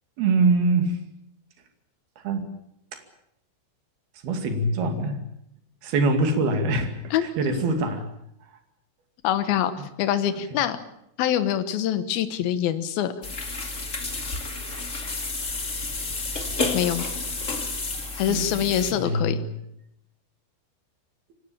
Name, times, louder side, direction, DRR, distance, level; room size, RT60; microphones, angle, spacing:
voice 1, 0.2-1.0 2.2-2.5 2.9-3.0 4.2-5.2 5.8-8.0 18.3-18.5 18.9-19.4, right 2 dB, 55° right, 7 dB, 3.9 m, -23 dB
voice 2, 9.2-9.7 10.0-10.8 11.2-13.1 16.7-17.1 18.2-19.4, left 10 dB, 70° left, 11 dB, 2.3 m, -24 dB
sound 1, 13.2-18.9, left 3 dB, 35° left, 1.1 m, -30 dB
24.5 x 18.0 x 8.8 m, 0.80 s
omnidirectional pair, 5.9 m